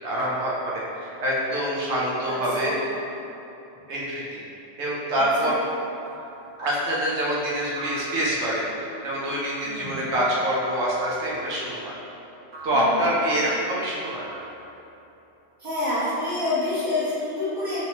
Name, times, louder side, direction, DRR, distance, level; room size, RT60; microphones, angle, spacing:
voice 1, 0.0-2.9 3.9-4.4 4.8-5.6 6.6-8.6 9.0-12.0 12.6-14.3, equal, 75° right, -6 dB, 1.0 m, -25 dB
voice 2, 2.2-2.7 5.1-5.5 9.6-10.0 12.6-13.1 15.6-17.9, left 2 dB, 20° right, -12 dB, 1.2 m, -28 dB
sound 1, 6.1-6.5 7.8-8.5 9.2-9.8 10.7-11.3 12.5-13.0 14.0-14.8, right 1 dB, 45° right, 0.6 m, -39 dB
5.5 x 2.8 x 2.8 m, 2.9 s
omnidirectional pair, 1.2 m